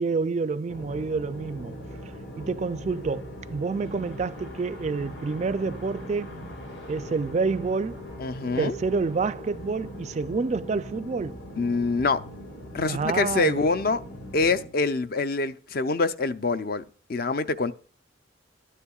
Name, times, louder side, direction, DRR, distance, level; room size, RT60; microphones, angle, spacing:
voice 1, 0.0-6.3 6.9-8.0 8.6-11.4 12.9-13.7, right 4 dB, 35° right, 0.3 m, -28 dB
sound 1, 0.7-14.7, equal, 75° left, 2.1 m, -40 dB
voice 2, 8.2-8.8 11.6-12.2 12.7-14.0 14.3-16.8 17.1-17.7, left 3 dB, 50° left, 0.5 m, -25 dB
12.5 x 9.8 x 2.3 m
head